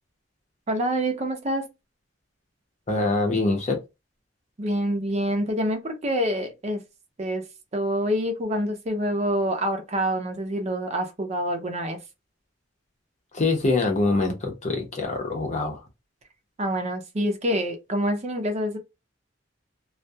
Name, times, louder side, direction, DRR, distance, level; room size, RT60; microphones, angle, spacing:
voice 1, 0.7-1.6 4.6-6.8 7.2-7.4 7.7-12.0 16.6-18.8, equal, 35° right, 0.5 m, -26 dB
voice 2, 2.9-3.8 13.3-15.8, left 3 dB, 40° left, 0.7 m, -24 dB
2.3 x 2.2 x 2.7 m
head